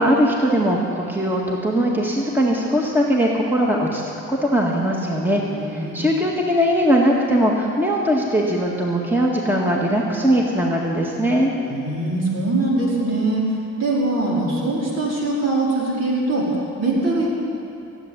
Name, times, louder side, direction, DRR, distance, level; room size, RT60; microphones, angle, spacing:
voice 1, 0.0-4.0 4.3-5.4 5.7-11.5, equal, 5° right, -2 dB, 1.8 m, -20 dB
voice 2, 5.3-6.1 11.6-13.4 13.8-17.3, right 2 dB, 55° right, -5 dB, 4.8 m, -22 dB
16.0 x 8.0 x 9.8 m, 2.7 s
cardioid pair, 90°, 30 cm